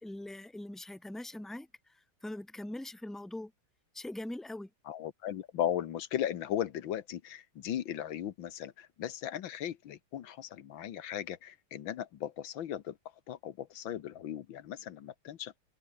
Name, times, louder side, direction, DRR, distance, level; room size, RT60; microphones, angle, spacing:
voice 1, 0.0-3.5 3.9-4.7, left 1 dB, ahead, 1.8 m, -42 dB
voice 2, 4.9-13.0 13.3-15.6, left 10 dB, 85° left, 1.9 m, -37 dB
omnidirectional pair, 2.1 m